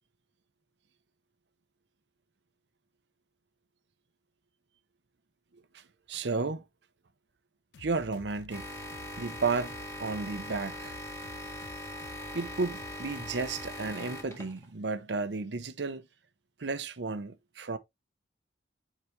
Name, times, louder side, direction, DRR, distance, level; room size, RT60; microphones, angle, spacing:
voice 1, 6.1-6.6 7.8-8.6 9.2-11.0 12.3-16.0 16.6-17.8, right 4 dB, 80° right, 0.8 m, -33 dB
sound 1, 7.7-13.9, left 5 dB, 85° left, 0.5 m, -51 dB
sound 2, 8.5-14.7, equal, 15° left, 2.0 m, -41 dB
7.1 x 5.0 x 3.2 m
head